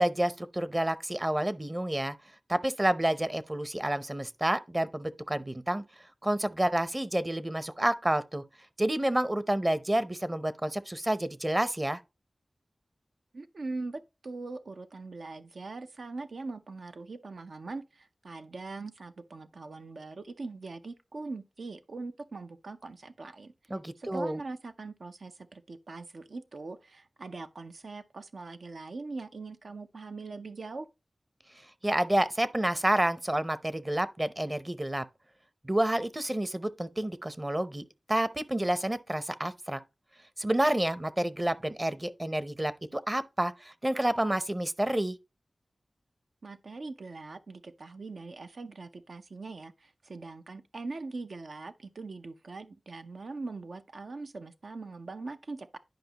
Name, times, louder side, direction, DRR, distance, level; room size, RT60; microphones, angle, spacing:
voice 1, 0.0-2.2 2.5-5.8 6.2-8.4 8.8-12.0 23.7-24.4 31.8-35.0 35.6-39.8 40.4-45.2, right 1 dB, 25° right, 0.7 m, -29 dB
voice 2, 13.3-23.5 24.0-30.9 46.4-55.8, right 3 dB, 85° right, 0.6 m, -41 dB
10.5 x 5.1 x 2.9 m
wide cardioid pair, 55°, 0 cm